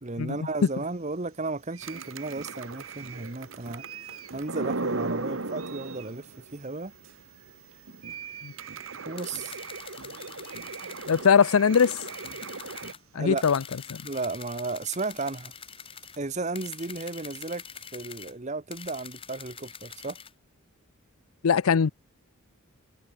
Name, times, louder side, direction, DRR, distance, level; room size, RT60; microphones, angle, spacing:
voice 1, 0.0-3.8 4.3-6.9 9.0-9.6 13.1-13.4 14.0-15.5 16.2-17.6 17.9-20.2, right 3 dB, 35° right, 1.0 m, -34 dB
sound 1, 0.6-18.2, right 10 dB, 90° right, 6.6 m, -53 dB
sound 2, 1.8-6.5 7.0-7.1 7.5-7.6 7.9-12.9, right 3 dB, 65° right, 1.5 m, -37 dB
sound 3, 9.2-11.3 11.7-13.0 13.4-16.2 16.5-18.3 18.7-20.3, left 7 dB, 25° left, 5.1 m, -44 dB
voice 2, 11.1-12.0 13.1-13.6 13.9-14.0 21.4-21.9, left 6 dB, 85° left, 0.5 m, -21 dB
head